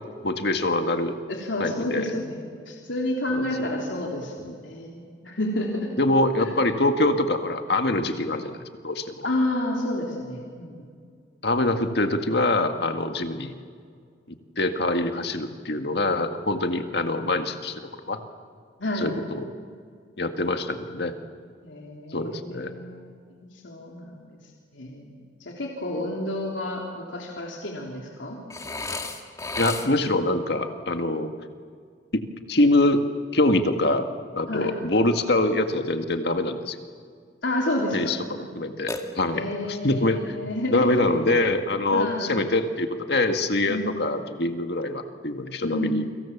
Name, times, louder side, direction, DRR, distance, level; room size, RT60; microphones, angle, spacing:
voice 1, 0.2-1.2 1.6-2.1 3.3-3.7 4.4-4.6 6.0-8.6 8.8-9.3 11.4-13.5 14.3-18.2 19.0-19.4 20.2-21.1 22.1-22.7 29.6-31.3 32.1-33.1 33.3-34.1 34.4-36.8 37.9-40.4 40.7-46.0, left 2 dB, 60° left, 6 dB, 1.9 m, -24 dB
voice 2, 1.3-2.4 2.7-4.3 4.6-5.9 6.4-6.5 9.2-10.9 18.8-19.1 21.6-23.0 23.5-24.3 24.7-28.4 34.5-34.7 37.4-38.1 39.3-41.1 41.9-42.3 43.7-43.9 45.6-46.0, left 1 dB, 85° left, -1 dB, 3.4 m, -30 dB
Burping eructation, 28.5-30.2 38.9-39.7, left 2 dB, 15° left, 1.8 m, -33 dB
29.5 x 25.0 x 7.3 m, 2.2 s
head